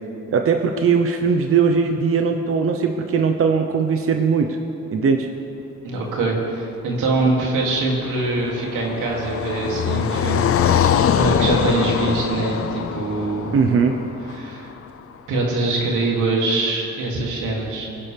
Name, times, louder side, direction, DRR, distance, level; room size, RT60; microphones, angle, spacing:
voice 1, 0.3-4.6 4.9-5.3 13.5-14.0, right 5 dB, 45° right, 4 dB, 1.0 m, -19 dB
voice 2, 5.8-13.7 14.3-14.7 15.3-17.9, right 3 dB, 90° right, -2 dB, 2.9 m, -23 dB
Car passing by, 7.6-14.9, left 8 dB, 50° left, 0.7 m, -23 dB
25.0 x 11.0 x 3.5 m, 2.9 s
cardioid pair, 90°, 30 cm